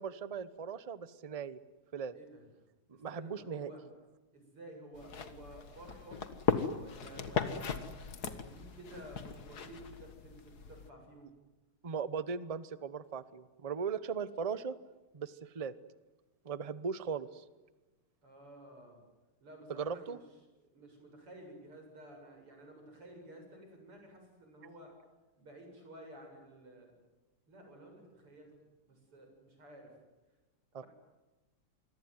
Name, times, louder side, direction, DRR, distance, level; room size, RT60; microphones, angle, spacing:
voice 1, 0.0-1.6 1.9-2.1 2.9-3.7 11.8-14.7 15.1-15.7 16.4-17.4 19.7-20.2 30.7-30.8, right 6 dB, 40° right, 15 dB, 0.5 m, -38 dB
voice 2, 2.9-3.9 4.3-6.3 6.7-7.9 8.2-11.3 18.2-19.0 19.4-20.2 20.6-24.9 25.4-26.9 27.5-28.5 28.8-29.9 30.7-30.9, right 1 dB, 90° right, 3 dB, 8.6 m, -53 dB
sound 1, 4.9-10.9, left 6 dB, 50° left, 2.1 m, -38 dB
27.0 x 23.0 x 9.6 m, 1.1 s
omnidirectional pair, 2.4 m